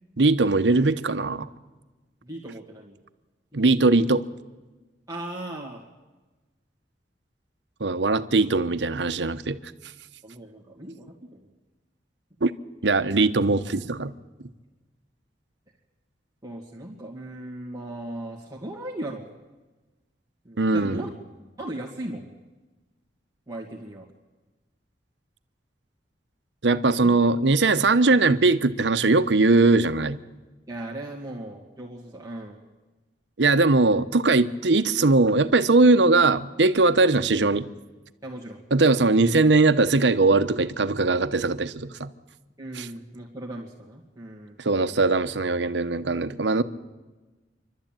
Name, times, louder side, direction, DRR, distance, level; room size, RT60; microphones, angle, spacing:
voice 1, 0.2-1.5 3.5-4.2 7.8-9.6 12.4-12.5 12.8-14.1 20.6-21.0 26.6-30.2 33.4-37.7 38.7-42.1 42.8-42.9 44.6-46.6, right 3 dB, 80° right, 10 dB, 0.9 m, -20 dB
voice 2, 2.2-3.0 3.5-3.8 5.1-5.8 10.2-11.5 13.2-13.3 16.4-19.3 20.4-21.1 21.6-22.3 23.5-24.1 26.8-27.2 30.7-32.6 38.2-38.6 42.6-44.6, right 1 dB, 20° right, -4 dB, 2.0 m, -37 dB
28.0 x 12.5 x 9.0 m, 1.2 s
head